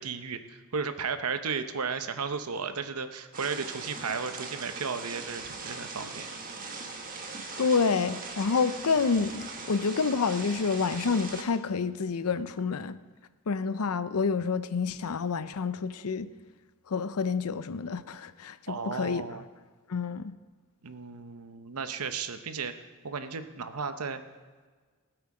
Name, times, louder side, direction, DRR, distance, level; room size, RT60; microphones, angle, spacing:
voice 1, 0.0-6.3 18.7-19.5 20.8-22.7 23.0-24.2, right 5 dB, 85° right, 9 dB, 0.9 m, -34 dB
sound 1, 3.3-11.4, right 3 dB, 40° right, 1.4 m, -40 dB
voice 2, 7.6-13.0 13.5-16.3 16.9-19.3 19.9-20.4, left 5 dB, 85° left, 13 dB, 0.6 m, -28 dB
18.5 x 8.0 x 4.9 m, 1.4 s
head